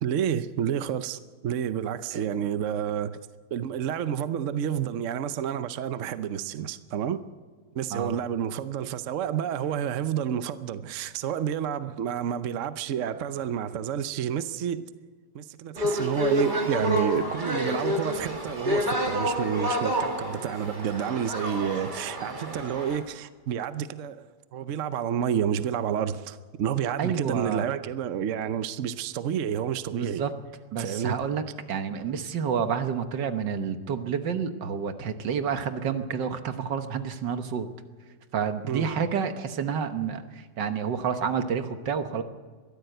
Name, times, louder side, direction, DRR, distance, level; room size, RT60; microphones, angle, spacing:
voice 1, 0.0-3.2 3.5-7.2 7.7-14.9 15.3-30.2 30.8-31.2 38.6-38.9, right 9 dB, 60° right, 0.9 m, -29 dB
sound 1, 15.8-23.0, equal, 25° right, 2.5 m, -29 dB
voice 2, 27.0-27.6 29.9-30.3 30.7-31.4 31.7-37.7 38.3-42.2, right 7 dB, 75° right, 1.8 m, -29 dB
22.5 x 14.5 x 7.9 m
omnidirectional pair, 2.0 m